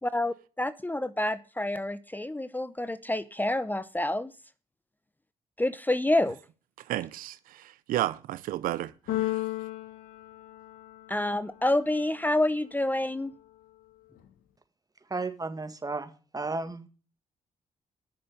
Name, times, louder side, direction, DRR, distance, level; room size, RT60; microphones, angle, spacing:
voice 1, 0.0-4.3 5.6-6.4 11.1-13.3, left 1 dB, 10° left, 0.7 m, -28 dB
voice 2, 6.9-9.5, right 14 dB, 80° right, 0.5 m, -33 dB
Keyboard (musical), 9.1-11.2, left 16 dB, 80° left, 1.3 m, -33 dB
voice 3, 15.1-16.9, right 3 dB, 25° right, 1.9 m, -34 dB
10.5 x 6.8 x 6.6 m
supercardioid pair, 60°, 14 cm